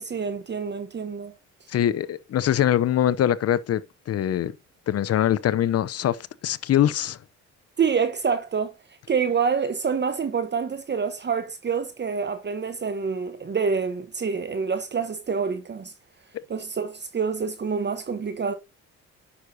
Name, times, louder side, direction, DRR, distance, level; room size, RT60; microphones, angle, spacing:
voice 1, 0.0-1.3 7.8-15.9 16.5-18.5, right 6 dB, 35° right, 1.0 m, -27 dB
voice 2, 1.7-3.8 4.1-4.5 4.9-7.2, left 11 dB, 55° left, 0.6 m, -23 dB
9.8 x 6.2 x 2.7 m
cardioid pair, 90°, 30 cm